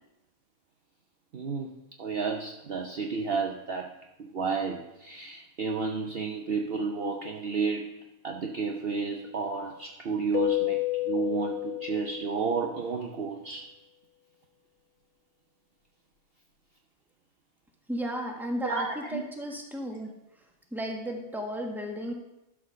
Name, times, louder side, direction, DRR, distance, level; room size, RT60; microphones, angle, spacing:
voice 1, 1.3-1.7 2.0-3.9 4.2-8.0 8.2-13.7 18.6-19.2, right 5 dB, 50° right, 2 dB, 0.8 m, -31 dB
Keyboard (musical), 10.3-12.9, left 18 dB, 60° left, 1.1 m, -30 dB
voice 2, 17.9-20.1 20.7-22.1, equal, ahead, 1 dB, 1.3 m, -34 dB
12.0 x 4.9 x 6.3 m, 0.91 s
omnidirectional pair, 1.5 m